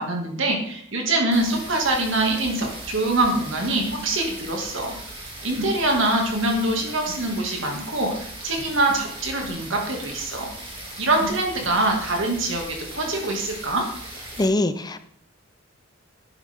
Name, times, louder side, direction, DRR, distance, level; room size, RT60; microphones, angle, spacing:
voice 1, 0.0-5.0 5.4-10.5 11.0-12.6 12.9-13.8, right 2 dB, 65° right, 1 dB, 2.3 m, -24 dB
sound 1, 1.3-14.4, right 1 dB, 25° right, 2.7 m, -38 dB
voice 2, 14.4-15.0, left 2 dB, 20° left, 11 dB, 0.6 m, -22 dB
11.5 x 10.5 x 3.7 m, 0.64 s
head